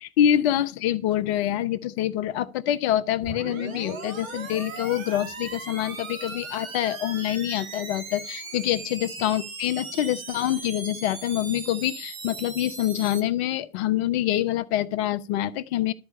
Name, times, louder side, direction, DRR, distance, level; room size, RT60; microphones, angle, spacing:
voice 1, 0.0-15.9, left 12 dB, 50° left, 1.0 m, -26 dB
sound 1, 3.2-13.2, right 4 dB, 75° right, 2.9 m, -38 dB
12.5 x 4.6 x 8.2 m
hypercardioid pair, 105°, 42 cm